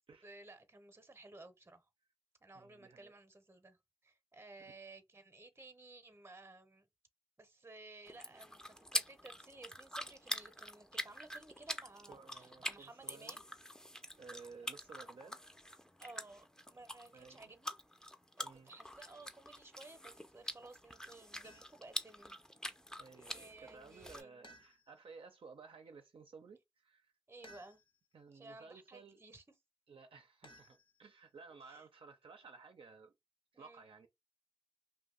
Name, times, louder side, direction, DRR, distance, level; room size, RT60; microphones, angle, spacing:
voice 1, 0.2-1.9 2.4-6.9 7.4-13.5 16.0-17.8 18.4-22.4 23.1-24.3 27.3-27.8 28.3-29.4 31.6-31.9 33.5-33.8, right 2 dB, 25° right, 0.7 m, -56 dB
voice 2, 2.5-3.1 4.6-4.7 12.1-13.4 14.2-15.4 17.1-17.4 18.4-18.7 22.7-27.1 28.1-29.2 29.9-33.1 33.5-34.1, right 4 dB, 70° right, 0.5 m, -56 dB
sound 1, 8.1-24.2, equal, 5° left, 0.5 m, -45 dB
sound 2, 21.4-22.0 24.4-25.2 27.4-28.1 30.4-31.3, equal, 65° left, 0.9 m, -61 dB
2.6 x 2.1 x 3.7 m
cardioid pair, 50°, 10 cm